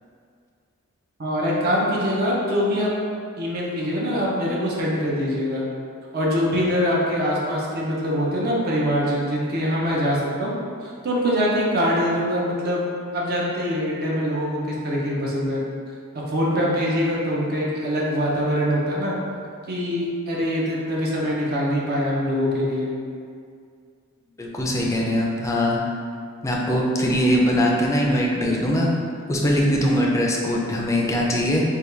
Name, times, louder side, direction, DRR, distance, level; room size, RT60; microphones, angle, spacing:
voice 1, 1.2-2.9 3.4-5.6 6.1-10.5 10.8-12.9 13.1-15.6 16.3-19.1 19.7-22.9, equal, 50° right, -4 dB, 0.6 m, -23 dB
voice 2, 24.4-25.8 26.4-28.9 29.3-31.6, equal, 15° left, -2 dB, 0.4 m, -21 dB
3.5 x 2.3 x 3.2 m, 2.3 s
head